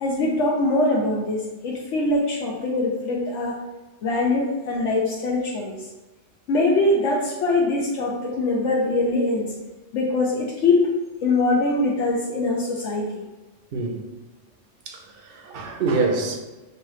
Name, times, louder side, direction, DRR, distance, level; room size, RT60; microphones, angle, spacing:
voice 1, 0.0-3.6 4.0-5.8 6.5-9.5 9.9-10.9 11.2-13.1, left 2 dB, 75° left, -4 dB, 1.0 m, -22 dB
voice 2, 14.9-16.4, right 3 dB, 55° right, 3 dB, 0.8 m, -26 dB
5.5 x 2.8 x 3.1 m, 1.2 s
omnidirectional pair, 1.2 m